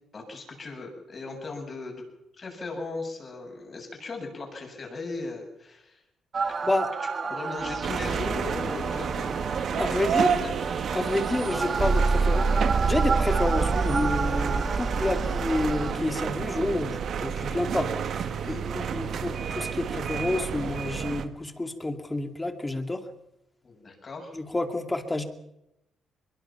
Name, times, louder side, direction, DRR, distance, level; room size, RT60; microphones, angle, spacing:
voice 1, 0.1-2.0 2.4-6.0 7.0-9.4 9.7-10.5 18.4-18.6 23.6-24.4, left 3 dB, 40° left, 2 dB, 7.6 m, -38 dB
sound 1, 6.3-15.9, right 4 dB, 40° right, 2.2 m, -28 dB
sound 2, 7.8-21.3, right 7 dB, 60° right, 1.6 m, -31 dB
voice 2, 9.8-10.3 10.9-23.0 24.3-25.2, left 2 dB, 15° left, 7 dB, 2.5 m, -29 dB
22.5 x 22.0 x 5.8 m, 0.85 s
cardioid pair, 90°, 0 cm